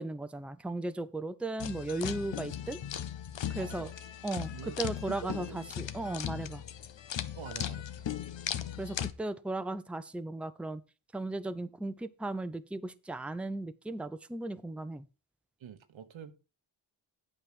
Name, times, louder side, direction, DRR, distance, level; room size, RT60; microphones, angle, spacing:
voice 1, 0.0-2.8 3.5-3.9 4.2-6.6 8.8-10.8 11.1-15.0, right 2 dB, 5° right, 0.7 m, -36 dB
sound 1, 1.6-9.1, left 10 dB, 70° left, 0.9 m, -38 dB
voice 2, 3.5-3.9 4.5-4.8 5.1-5.6 6.0-6.1 7.3-8.0 15.6-16.3, right 8 dB, 80° right, 1.2 m, -45 dB
8.8 x 5.5 x 6.4 m
cardioid pair, 60°, 46 cm